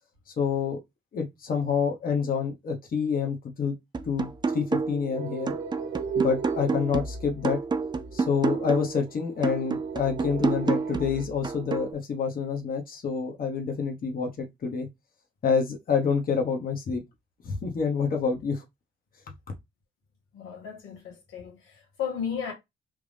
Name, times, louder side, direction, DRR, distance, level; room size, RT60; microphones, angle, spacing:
voice 1, 0.3-0.8 1.1-3.7 4.0-5.5 6.1-7.6 8.1-14.9 15.4-17.0 17.4-18.6, left 6 dB, 45° left, 1.1 m, -27 dB
sound 1, 3.9-5.1 5.5-9.0 9.4-11.9, right 4 dB, 20° right, 0.4 m, -29 dB
sound 2, 5.1-11.3, right 6 dB, 85° right, 0.8 m, -37 dB
voice 2, 20.3-22.5, left 7 dB, 90° left, 1.6 m, -34 dB
3.5 x 2.6 x 3.4 m
cardioid pair, 90°, 20 cm